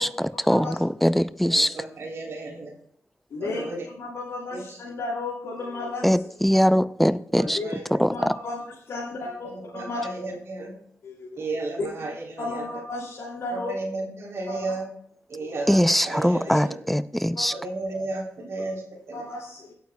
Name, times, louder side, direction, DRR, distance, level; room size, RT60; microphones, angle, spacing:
voice 1, 0.0-1.8 6.0-7.6 8.0-8.1 15.7-17.5, equal, 5° left, 14 dB, 0.5 m, -22 dB
voice 2, 1.4-2.7 3.4-3.9 4.5-4.8 7.3-8.0 9.2-10.7 11.4-12.7 13.5-14.9 15.3-16.8 17.5-19.3, right 2 dB, 65° right, -1 dB, 3.3 m, -34 dB
voice 3, 3.3-6.3 7.4-7.8 8.1-10.0 11.0-11.3 12.0-12.1 12.4-13.7 14.5-14.6 15.4-15.6 17.3-17.4 19.1-19.7, left 3 dB, 75° left, -4 dB, 2.7 m, -34 dB
16.5 x 9.4 x 2.3 m, 0.70 s
cardioid pair, 85°, 5 cm